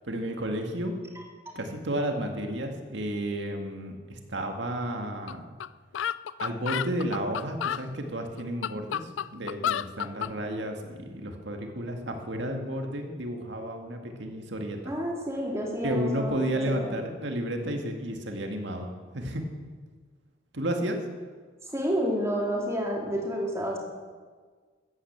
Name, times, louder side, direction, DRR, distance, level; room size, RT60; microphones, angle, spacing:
voice 1, 0.1-1.0 1.6-5.5 6.4-14.9 15.8-19.4 20.5-21.0, right 1 dB, 65° right, 3 dB, 2.0 m, -32 dB
sound 1, 5.3-5.4 5.6-5.7 5.9-7.8 8.4-10.3, left 9 dB, 70° left, 0.3 m, -30 dB
voice 2, 14.8-16.4 16.7-16.9 21.6-23.8, equal, 15° right, -2 dB, 2.8 m, -30 dB
14.5 x 10.0 x 7.4 m, 1.5 s
head